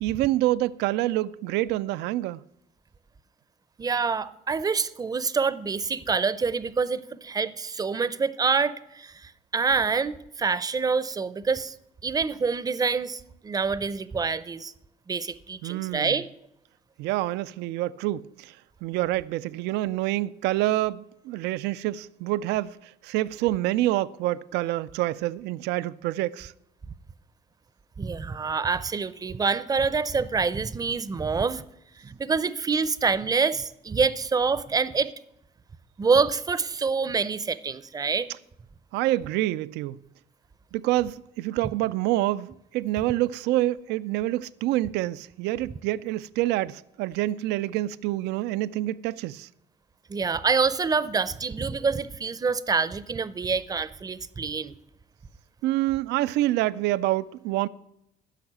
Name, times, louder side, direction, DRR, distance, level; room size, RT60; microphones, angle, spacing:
voice 1, 0.0-2.4 15.6-16.1 17.0-26.5 38.9-40.0 40.7-49.5 55.6-57.7, right 16 dB, 85° right, 0.4 m, -27 dB
voice 2, 3.8-11.7 12.0-14.7 15.1-16.3 28.0-31.6 32.0-35.1 36.0-38.3 50.1-54.7, right 5 dB, 20° right, 0.5 m, -26 dB
10.5 x 6.3 x 8.8 m
cardioid pair, 110°, 17 cm